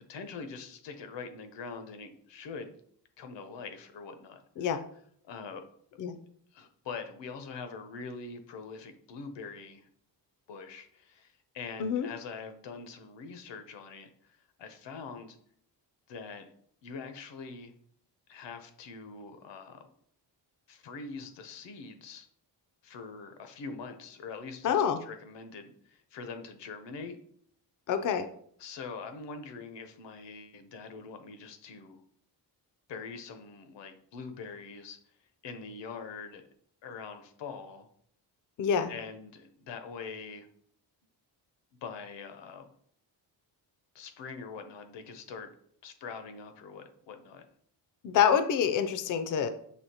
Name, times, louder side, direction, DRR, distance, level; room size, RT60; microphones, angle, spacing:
voice 1, 0.0-2.7 3.2-4.8 5.2-5.6 6.5-9.9 10.5-15.4 16.1-16.5 16.8-17.7 18.3-19.8 20.7-22.3 22.8-27.2 28.6-32.0 32.9-35.0 35.4-36.5 36.8-37.9 38.9-40.5 41.8-42.7 43.9-45.5 45.8-47.4, left 5 dB, 85° left, 8 dB, 0.8 m, -43 dB
voice 2, 24.6-25.0 27.9-28.3 38.6-38.9 48.0-49.5, left 8 dB, 50° left, 9 dB, 0.4 m, -26 dB
6.2 x 2.8 x 2.8 m, 0.64 s
wide cardioid pair, 150°, 42 cm